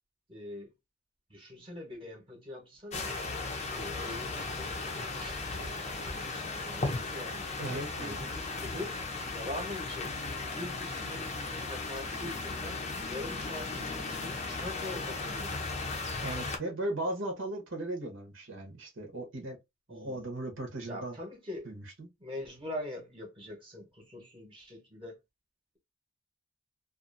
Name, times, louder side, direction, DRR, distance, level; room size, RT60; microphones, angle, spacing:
voice 1, 0.3-0.7 1.3-3.1 3.7-9.0 9.3-10.1 10.5-15.8 19.9-20.2 20.9-21.7 22.2-25.2, left 1 dB, 25° right, 1.0 m, -43 dB
sound 1, 2.9-16.6, left 3 dB, 35° left, 0.6 m, -36 dB
voice 2, 7.6-8.2 16.2-19.6 19.9-21.2 21.6-22.1, right 1 dB, 85° right, 0.9 m, -37 dB
2.5 x 2.4 x 2.5 m
head